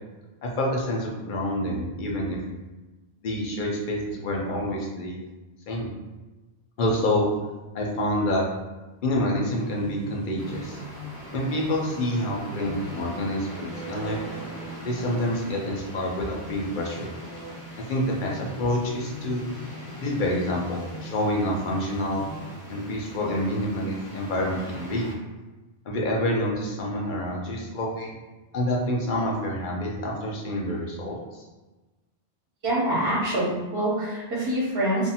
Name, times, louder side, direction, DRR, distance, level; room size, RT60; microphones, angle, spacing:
voice 1, 0.6-2.4 3.2-5.2 5.7-5.9 6.8-7.3 7.7-8.5 9.0-10.8 11.3-14.2 14.8-17.1 17.9-19.5 20.0-22.2 22.7-25.1 25.9-28.1 28.5-31.4, left 1 dB, 55° left, -1 dB, 0.7 m, -27 dB
sound 1, 9.4-22.5, right 1 dB, 20° right, 0.7 m, -42 dB
sound 2, 10.4-25.1, right 1 dB, 20° left, 0.6 m, -43 dB
voice 2, 32.6-35.1, right 1 dB, 60° right, -7 dB, 0.9 m, -25 dB
2.6 x 2.4 x 2.7 m, 1.2 s
omnidirectional pair, 1.1 m